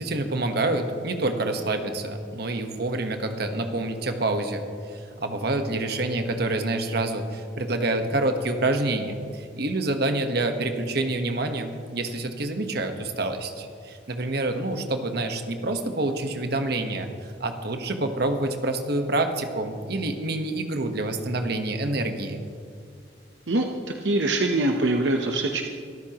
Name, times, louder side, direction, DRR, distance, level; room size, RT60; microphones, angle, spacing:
voice 1, 0.0-22.4, right 2 dB, 60° right, 6 dB, 1.3 m, -27 dB
voice 2, 24.0-25.6, right 2 dB, 75° right, 3 dB, 0.9 m, -23 dB
24.0 x 13.5 x 3.0 m, 2.3 s
head